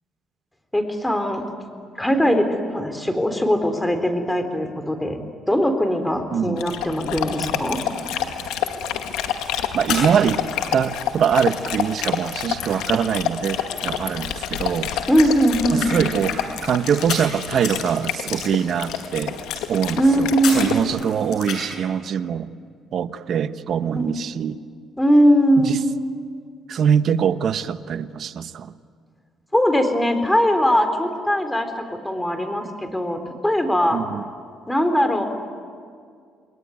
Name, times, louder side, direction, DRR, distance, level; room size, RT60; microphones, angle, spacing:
voice 1, 0.7-1.4 2.0-5.2 5.5-7.8 15.1-15.9 20.0-20.8 23.9-24.1 25.0-25.7 29.5-34.0 34.7-35.3, equal, 10° left, 7 dB, 4.1 m, -20 dB
voice 2, 6.3-6.6 9.7-10.4 10.7-14.9 15.7-19.4 19.7-20.3 20.5-22.5 22.9-24.6 25.6-25.8 26.7-28.7 33.9-34.2, right 8 dB, 60° right, 12 dB, 1.1 m, -23 dB
Dog, 6.6-20.8, left 9 dB, 85° left, 2.0 m, -28 dB
sound 1, 7.8-21.7, left 5 dB, 70° left, 7.5 m, -35 dB
28.5 x 21.5 x 9.5 m, 2.1 s
supercardioid pair, 75°, 0 cm